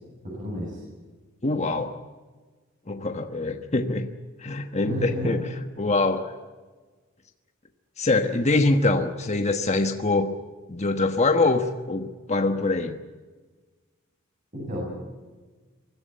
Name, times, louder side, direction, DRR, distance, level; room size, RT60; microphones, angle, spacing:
voice 1, 0.2-0.8 4.8-5.4 14.5-14.9, equal, 40° right, -3 dB, 7.9 m, -30 dB
voice 2, 1.4-2.0 2.9-4.1 4.4-5.4 5.8-6.3 8.0-10.3 10.7-12.9, left 2 dB, 35° left, 6 dB, 1.3 m, -24 dB
24.5 x 15.5 x 9.5 m, 1.3 s
head